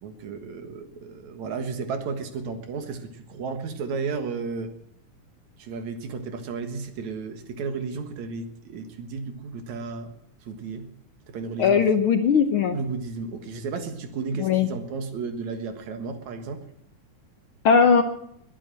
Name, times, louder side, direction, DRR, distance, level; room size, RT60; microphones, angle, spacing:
voice 1, 0.0-4.7 5.6-10.1 10.5-10.9 11.3-11.9 12.7-16.6, right 4 dB, 65° right, 8 dB, 2.8 m, -33 dB
voice 2, 11.6-12.8 14.4-14.7 17.6-18.0, left 6 dB, 75° left, 7 dB, 1.2 m, -19 dB
21.0 x 9.1 x 7.6 m, 0.73 s
omnidirectional pair, 3.6 m